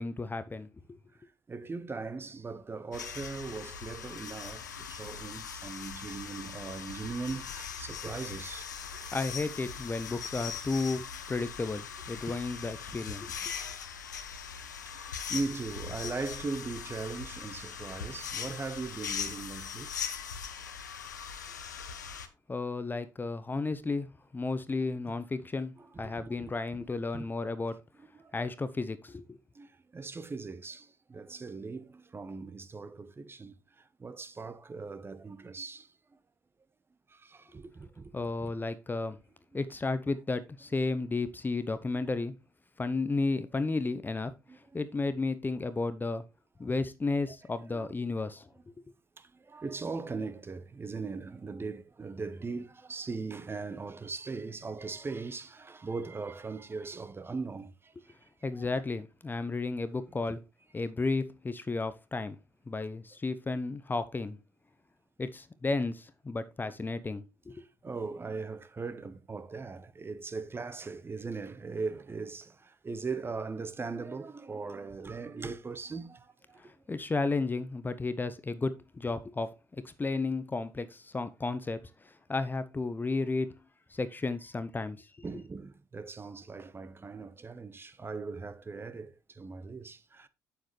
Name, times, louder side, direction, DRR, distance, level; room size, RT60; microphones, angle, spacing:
voice 1, 0.0-1.0 9.1-13.4 22.5-27.8 28.3-29.4 38.1-39.2 39.5-42.3 42.8-44.3 44.7-46.2 46.6-48.5 58.4-60.4 60.7-62.4 62.7-64.4 65.2-67.6 76.6-79.5 79.8-83.6 83.9-85.2, left 3 dB, 20° left, 0.8 m, -33 dB
voice 2, 1.2-9.2 12.3-12.4 14.3-19.9 25.1-25.2 25.8-26.9 27.1-27.3 28.0-28.3 29.5-36.2 37.1-38.1 38.4-38.5 44.5-44.8 46.6-46.7 47.7-47.9 49.2-58.2 58.5-58.7 67.6-76.7 85.2-90.3, right 4 dB, 25° right, 1.0 m, -40 dB
sound 1, 2.9-22.3, left 7 dB, 85° left, 0.8 m, -40 dB
8.6 x 7.6 x 3.2 m
figure-of-eight pair, 55°, 9 cm